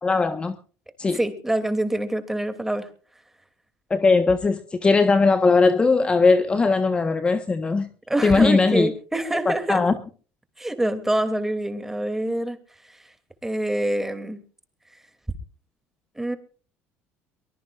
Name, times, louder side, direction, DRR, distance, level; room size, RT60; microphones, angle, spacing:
voice 1, 0.0-0.6 1.0-1.2 3.9-7.9 8.2-8.9 9.4-9.9, left 4 dB, 20° left, 1.3 m, -19 dB
voice 2, 1.1-2.9 8.1-9.8 10.6-12.6 12.9-13.0 13.4-14.4 16.2-16.4, right 1 dB, 5° right, 2.9 m, -25 dB
23.0 x 20.5 x 2.6 m
cardioid pair, 115°, 5 cm